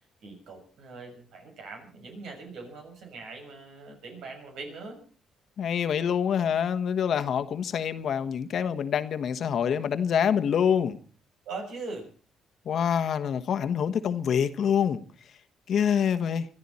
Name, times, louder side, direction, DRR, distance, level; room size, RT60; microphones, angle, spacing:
voice 1, 0.2-5.0 11.4-12.1, right 3 dB, 80° right, 3 dB, 6.9 m, -41 dB
voice 2, 5.6-11.0 12.6-15.0 15.7-16.5, left 8 dB, 65° left, 10 dB, 1.2 m, -26 dB
24.5 x 13.5 x 4.2 m, 0.38 s
cardioid pair, 90°, 0 cm